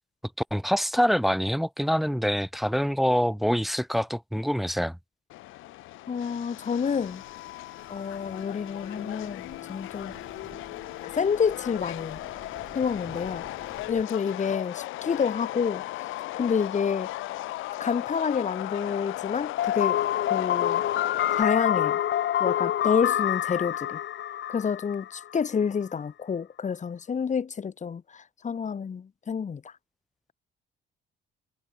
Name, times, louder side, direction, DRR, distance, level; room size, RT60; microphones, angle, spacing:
voice 1, 0.5-5.0, equal, ahead, 0.5 m, -25 dB
Subway metro underground, 5.3-21.4, left 17 dB, 85° left, 0.7 m, -37 dB
voice 2, 6.1-7.2 7.9-10.1 11.2-12.2 12.7-13.4 13.9-15.8 16.4-17.1 17.8-20.0 20.3-20.8 21.4-22.0 22.4-24.0 24.5-29.6, left 6 dB, 40° left, 1.2 m, -28 dB
sound 1, 7.0-14.0, right 6 dB, 45° right, 5.4 m, -52 dB
sound 2, 19.6-25.4, left 11 dB, 65° left, 1.4 m, -27 dB
cardioid pair, 90°, 20 cm